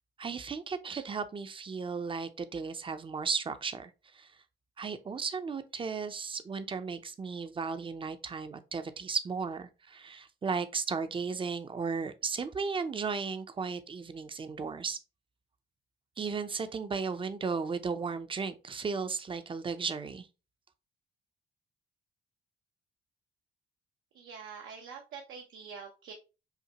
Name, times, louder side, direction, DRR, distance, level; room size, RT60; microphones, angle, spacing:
voice 1, 0.2-4.4 4.8-15.0 16.2-20.3, right 5 dB, 25° right, 0.5 m, -35 dB
voice 2, 24.1-26.1, right 6 dB, 85° right, 0.8 m, -45 dB
5.6 x 2.1 x 2.8 m
cardioid pair, 90°, 20 cm